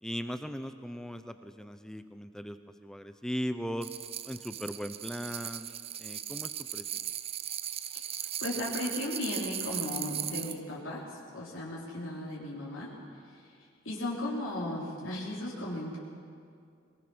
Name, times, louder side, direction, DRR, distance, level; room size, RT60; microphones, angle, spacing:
voice 1, 0.0-3.9 4.2-5.7 6.0-6.8, equal, 5° left, 9 dB, 0.7 m, -38 dB
sound 1, 3.8-10.6, right 10 dB, 30° right, 0.5 m, -38 dB
voice 2, 8.4-12.9 13.3-13.4 13.8-16.0, left 1 dB, 80° left, -6 dB, 3.5 m, -36 dB
22.5 x 20.5 x 6.3 m, 2.4 s
head